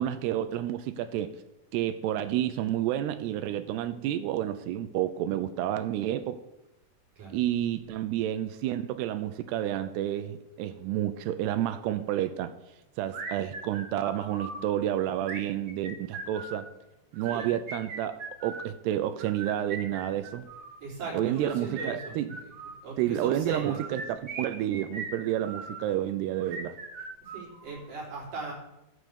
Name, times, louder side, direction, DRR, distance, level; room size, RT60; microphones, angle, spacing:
voice 1, 0.0-1.4 1.7-6.4 7.3-12.5 13.0-16.7 17.1-20.5 21.1-22.4 23.0-26.8, right 12 dB, 80° right, 11 dB, 2.5 m, -30 dB
sound 1, 13.1-14.6 15.2-16.6 17.1-18.7 19.2-20.8 21.3-22.8 23.5-25.8 26.4-27.9, right 3 dB, 65° right, 1.3 m, -40 dB
voice 2, 20.8-22.1 22.8-23.8 27.2-28.5, right 4 dB, 50° right, -4 dB, 4.9 m, -38 dB
13.0 x 6.3 x 6.8 m, 0.90 s
omnidirectional pair, 5.1 m